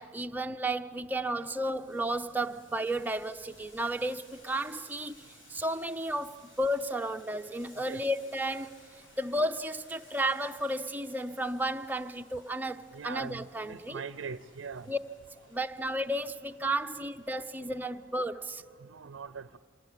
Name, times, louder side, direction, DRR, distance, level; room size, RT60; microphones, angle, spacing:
voice 1, 0.0-8.8 9.2-14.0 14.9-15.0 15.5-18.6, right 1 dB, 10° right, 0.6 m, -33 dB
Boiling, 1.3-18.1, left 1 dB, 80° left, 5.0 m, -59 dB
voice 2, 12.9-13.4 13.7-14.9 18.9-19.6, right 5 dB, 80° right, 0.5 m, -41 dB
26.0 x 17.5 x 8.3 m
head